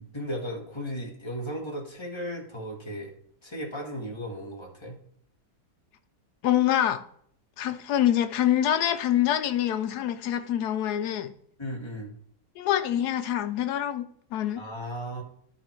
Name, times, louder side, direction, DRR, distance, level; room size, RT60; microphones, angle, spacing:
voice 1, 0.0-3.1 3.4-5.0 11.6-12.1 14.6-15.2, equal, 15° left, 1.5 m, -35 dB
voice 2, 6.4-7.0 7.6-11.3 12.6-14.1 14.3-14.6, left 11 dB, 75° left, 1.2 m, -25 dB
11.5 x 4.0 x 4.4 m
omnidirectional pair, 1.7 m